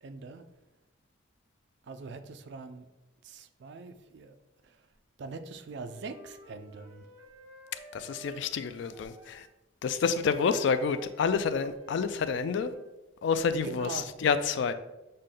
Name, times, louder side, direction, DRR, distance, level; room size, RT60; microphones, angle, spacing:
voice 1, 0.0-0.4 1.9-2.9 3.2-4.4 4.6-4.8 5.2-7.1 13.6-14.1, right 4 dB, 55° right, 9 dB, 0.4 m, -42 dB
Wind instrument woodwind instrument, 5.9-9.5 10.3-12.9, right 1 dB, 15° right, 1.2 m, -53 dB
voice 2, 7.9-9.5 9.8-12.7 13.2-14.7, left 5 dB, 60° left, 12 dB, 0.3 m, -28 dB
6.5 x 2.2 x 3.7 m, 0.99 s
head